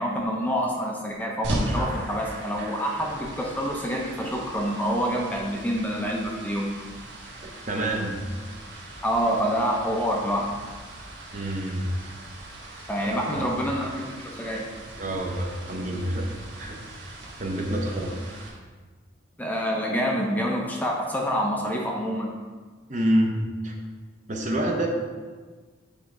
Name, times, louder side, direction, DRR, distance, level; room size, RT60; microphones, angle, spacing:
voice 1, 0.0-6.9 9.0-10.5 12.8-14.7 19.4-22.3, equal, 10° left, -1 dB, 0.7 m, -27 dB
sound 1, 1.4-18.5, right 1 dB, 60° right, 1.5 m, -38 dB
voice 2, 7.4-8.2 11.3-11.9 13.0-13.5 15.0-16.3 16.5-16.8 17.4-18.1 22.9-23.7 24.3-24.9, right 1 dB, 35° right, 1 dB, 0.8 m, -27 dB
8.6 x 3.4 x 4.8 m, 1.4 s
head